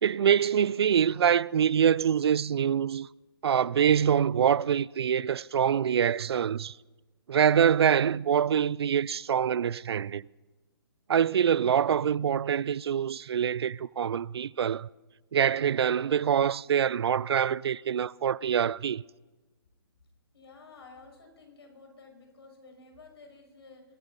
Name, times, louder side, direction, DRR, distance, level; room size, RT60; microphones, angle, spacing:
voice 1, 0.0-3.1 3.4-6.7 7.3-10.3 11.1-14.9 15.3-19.0, right 8 dB, 80° right, 0.4 m, -25 dB
voice 2, 20.3-23.8, left 3 dB, 75° left, 5.4 m, -52 dB
22.5 x 12.5 x 4.0 m
hypercardioid pair, 150°, 13 cm